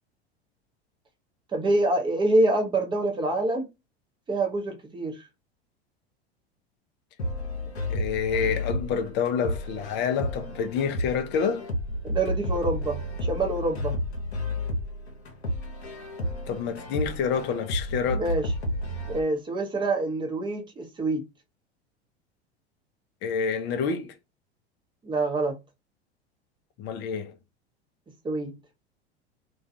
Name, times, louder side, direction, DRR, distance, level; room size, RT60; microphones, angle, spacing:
voice 1, 1.5-3.7 4.3-5.2 12.0-14.0 18.1-18.4 19.1-21.2 25.0-25.5 28.2-28.5, right 2 dB, 15° right, 0.7 m, -26 dB
sound 1, 7.2-19.2, left 1 dB, 80° left, 0.7 m, -32 dB
voice 2, 7.9-11.7 16.5-18.3 23.2-24.1 26.8-27.3, left 6 dB, 35° left, 0.5 m, -28 dB
2.3 x 2.2 x 2.6 m
figure-of-eight pair, 80°, 32 cm